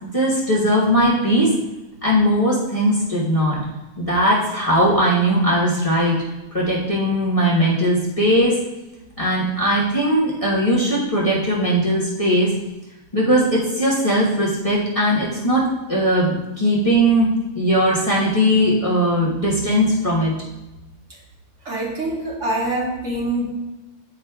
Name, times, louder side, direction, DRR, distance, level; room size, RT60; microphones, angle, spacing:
voice 1, 0.0-1.5 2.0-3.6 4.0-6.2 6.5-8.6 9.2-12.5 13.1-17.3 17.5-20.3, equal, 25° left, -7 dB, 1.1 m, -19 dB
voice 2, 21.6-23.6, right 1 dB, 55° right, -4 dB, 1.5 m, -25 dB
9.0 x 4.9 x 2.3 m, 1.0 s
omnidirectional pair, 1.6 m